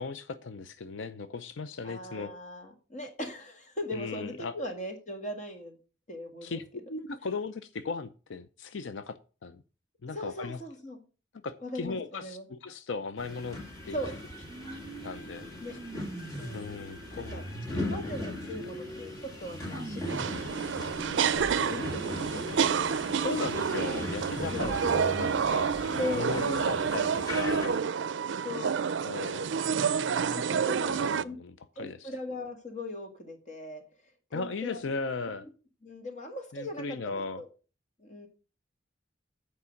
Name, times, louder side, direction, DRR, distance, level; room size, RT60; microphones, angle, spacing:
voice 1, 0.0-2.3 3.9-4.5 6.4-9.6 10.0-10.6 11.4-13.6 13.9-14.0 15.0-15.5 16.5-17.4 17.7-18.0 23.2-27.8 29.0-32.1 34.3-35.4 36.5-37.4, left 4 dB, 85° left, 12 dB, 0.5 m, -37 dB
voice 2, 1.8-5.8 6.1-6.6 10.1-11.0 11.6-12.5 13.9-14.1 15.6-15.7 16.3-16.8 17.1-17.4 17.8-20.8 21.1-22.4 24.5-24.8 26.0-26.7 28.4-28.8 30.4-31.4 31.8-33.8 34.3-34.8 35.8-37.5 38.0-38.3, left 1 dB, 40° left, 4 dB, 1.7 m, -39 dB
sound 1, 13.2-27.7, left 1 dB, 20° left, 2.3 m, -39 dB
sound 2, 14.5-20.5 20.9-25.9, right 1 dB, 30° right, 1.1 m, -44 dB
sound 3, 20.1-31.2, right 6 dB, 80° right, 0.4 m, -29 dB
8.3 x 4.7 x 6.4 m, 0.35 s
head